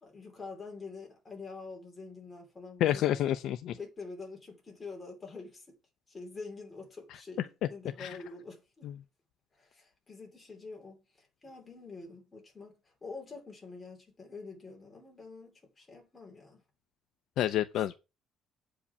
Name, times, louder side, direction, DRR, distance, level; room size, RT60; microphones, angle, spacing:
voice 1, 0.0-3.3 3.7-5.8 6.1-8.8 9.6-16.6, left 4 dB, 15° left, 3.1 m, -46 dB
voice 2, 2.8-3.8 8.0-8.2 8.8-8.9 17.4-17.9, left 12 dB, 60° left, 0.5 m, -29 dB
8.2 x 5.1 x 6.9 m
cardioid pair, 180°, 0 cm